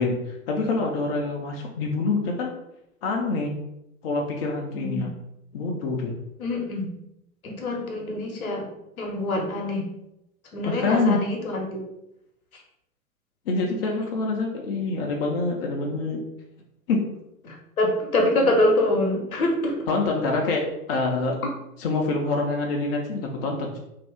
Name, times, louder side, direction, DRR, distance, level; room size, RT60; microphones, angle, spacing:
voice 1, 0.0-2.5 3.0-3.5 4.0-5.1 5.5-6.1 10.6-11.2 13.5-16.2 16.9-17.0 19.9-21.4 21.8-23.8, left 3 dB, 45° left, 0 dB, 0.5 m, -26 dB
voice 2, 4.7-5.1 6.4-6.9 7.4-8.7 9.0-9.9 10.5-11.8 17.4-19.8, left 1 dB, 70° left, 1 dB, 0.9 m, -25 dB
2.7 x 2.3 x 3.4 m, 0.85 s
figure-of-eight pair, 100°, 44 cm